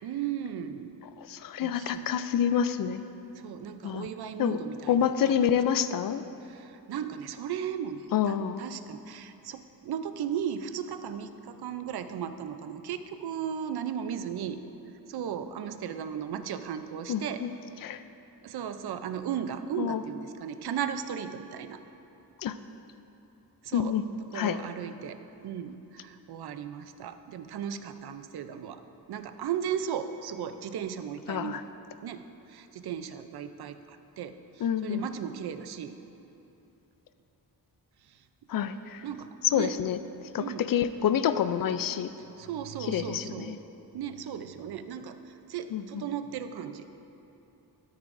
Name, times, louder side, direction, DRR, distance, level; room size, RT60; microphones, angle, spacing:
voice 1, 0.0-0.9 1.6-2.2 3.3-5.5 6.4-14.6 15.1-17.4 18.4-21.8 23.6-24.0 24.3-28.8 29.1-31.6 32.0-32.2 32.5-35.9 38.1-38.2 39.0-39.7 40.4-40.7 42.2-43.6 43.9-46.9, right 8 dB, 80° right, 9 dB, 0.6 m, -36 dB
voice 2, 1.2-3.0 3.8-4.1 4.4-4.6 4.9-6.2 8.1-8.6 17.1-17.5 17.8-18.0 19.8-20.0 22.4-22.6 23.7-24.1 24.3-24.6 31.3-31.6 34.6-35.0 38.5-39.0 39.4-40.0 40.3-42.1 42.9-43.6 45.7-46.0, left 9 dB, 60° left, 11 dB, 0.5 m, -27 dB
14.0 x 13.0 x 2.6 m, 2.9 s
wide cardioid pair, 165°, 38 cm